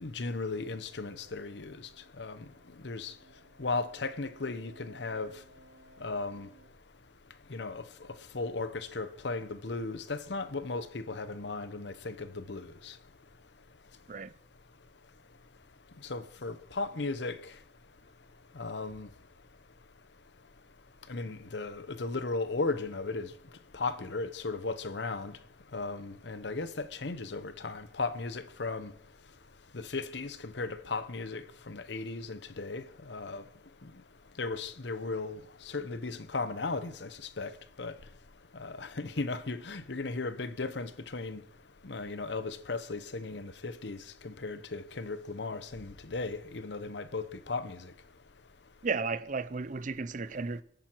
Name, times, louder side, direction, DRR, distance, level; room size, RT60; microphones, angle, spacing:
voice 1, 0.0-1.8 2.2-2.4 2.8-3.1 3.6-5.3 6.0-6.5 7.5-7.8 8.3-12.9 16.1-17.4 18.5-19.1 21.1-23.3 23.7-25.3 25.7-28.9 29.7-33.4 34.4-35.4 35.7-37.1 37.4-37.5 37.8-37.9 38.5-41.4 41.8-47.9, left 3 dB, 65° left, 0.9 m, -36 dB
sound 1, 0.6-6.7, right 1 dB, 80° right, 3.9 m, -60 dB
voice 2, 48.8-50.6, right 4 dB, 45° right, 0.6 m, -34 dB
23.0 x 8.9 x 4.6 m
head